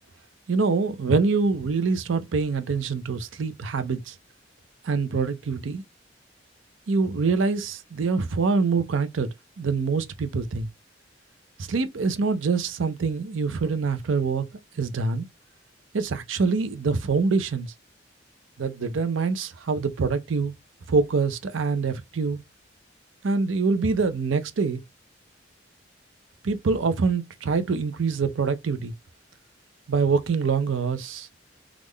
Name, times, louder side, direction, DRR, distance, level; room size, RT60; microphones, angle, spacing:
voice 1, 0.5-4.1 4.8-5.8 6.9-9.3 9.6-10.7 11.6-14.4 14.8-15.3 15.9-17.7 18.6-20.5 20.9-22.4 23.2-24.8 26.4-28.9 29.9-31.3, right 4 dB, 90° right, 0.5 m, -25 dB
3.6 x 2.4 x 3.1 m
head